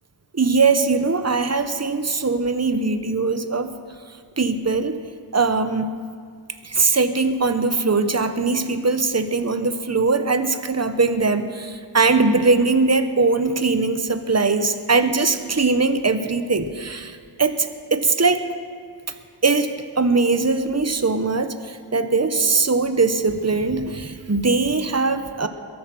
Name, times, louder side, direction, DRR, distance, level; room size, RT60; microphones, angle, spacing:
voice 1, 0.3-3.7 4.4-5.0 5.3-5.9 6.6-18.5 19.4-25.5, right 3 dB, 35° right, 9 dB, 1.0 m, -21 dB
22.5 x 7.8 x 6.2 m, 2.2 s
wide cardioid pair, 45°, 47 cm